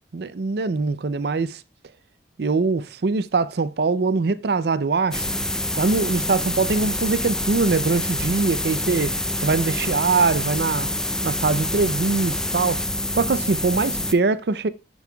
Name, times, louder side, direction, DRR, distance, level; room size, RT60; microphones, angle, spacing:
voice 1, 0.1-1.6 2.4-5.2 5.8-9.2 9.4-10.9 11.2-12.8 13.2-14.7, right 4 dB, 65° right, 0.5 m, -22 dB
sound 1, 5.1-14.1, left 1 dB, 5° left, 0.4 m, -26 dB
10.5 x 5.4 x 2.3 m
head